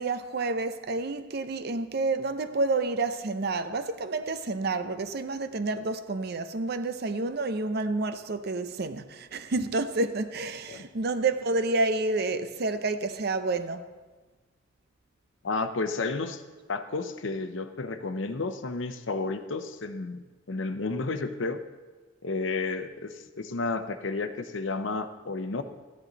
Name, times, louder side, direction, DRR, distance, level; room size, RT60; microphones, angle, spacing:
voice 1, 0.0-13.8, right 3 dB, 55° right, 0.6 m, -29 dB
voice 2, 15.4-16.4 16.7-21.6 22.2-25.6, left 3 dB, 80° left, 0.8 m, -32 dB
14.0 x 10.0 x 4.0 m
head